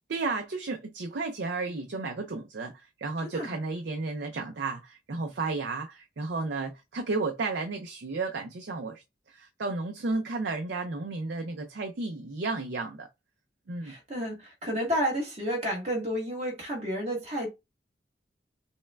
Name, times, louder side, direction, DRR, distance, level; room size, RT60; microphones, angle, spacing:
voice 1, 0.1-9.0 9.3-13.1 13.7-13.9, right 3 dB, 75° right, 0.5 m, -33 dB
voice 2, 3.2-3.6 13.8-17.5, equal, 35° right, 1.4 m, -31 dB
5.4 x 2.2 x 2.2 m
head